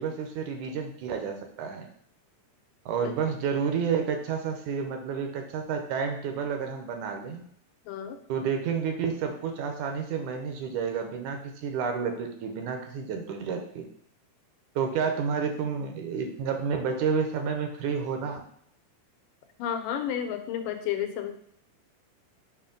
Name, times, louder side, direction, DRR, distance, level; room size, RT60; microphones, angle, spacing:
voice 1, 0.0-1.9 2.9-7.4 8.3-13.9 14.8-18.4, right 6 dB, 75° right, 5 dB, 2.1 m, -30 dB
voice 2, 7.9-8.2 19.6-21.3, left 9 dB, 85° left, 7 dB, 2.3 m, -31 dB
7.0 x 2.8 x 5.2 m, 0.67 s
omnidirectional pair, 3.7 m